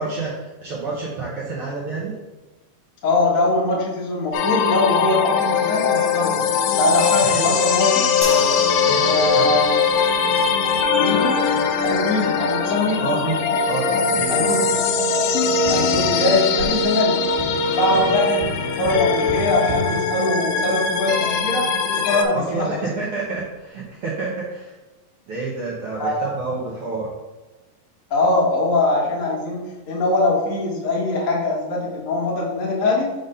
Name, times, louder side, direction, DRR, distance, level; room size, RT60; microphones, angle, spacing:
voice 1, 0.0-2.1 7.2-7.5 8.8-9.6 13.0-14.7 17.9-18.1 22.3-24.8 25.3-27.1, right 3 dB, 75° right, -4 dB, 1.3 m, -29 dB
voice 2, 3.0-6.4 6.7-8.1 9.0-9.7 11.0-11.5 11.8-13.1 14.3-14.6 15.6-17.2 17.8-22.8 25.9-26.2 28.1-33.1, left 2 dB, 65° left, -3 dB, 0.8 m, -22 dB
sound 1, 4.3-22.2, left 5 dB, 90° left, 2.2 m, -21 dB
sound 2, 8.2-21.5 22.5-22.7, right 2 dB, 20° left, 1.2 m, -37 dB
Tap, 15.7-20.9 23.5-23.6, right 1 dB, 90° right, 2.5 m, -34 dB
5.1 x 3.9 x 5.4 m, 1.2 s
omnidirectional pair, 3.7 m